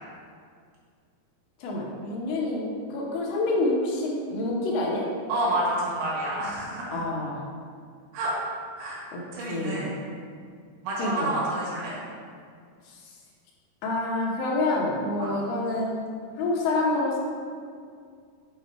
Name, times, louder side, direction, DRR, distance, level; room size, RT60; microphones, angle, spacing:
voice 1, 1.6-5.0 6.9-7.4 9.1-9.2 9.5-9.9 11.0-11.3 13.8-16.0 16.4-17.2, left 2 dB, 85° left, -3 dB, 3.1 m, -27 dB
voice 2, 5.3-7.0 8.1-8.3 8.8-9.0 9.3-10.0 10.8-11.9 15.2-15.3, right 1 dB, 70° right, -7 dB, 3.3 m, -29 dB
7.8 x 2.8 x 4.5 m, 2.2 s
omnidirectional pair, 5.1 m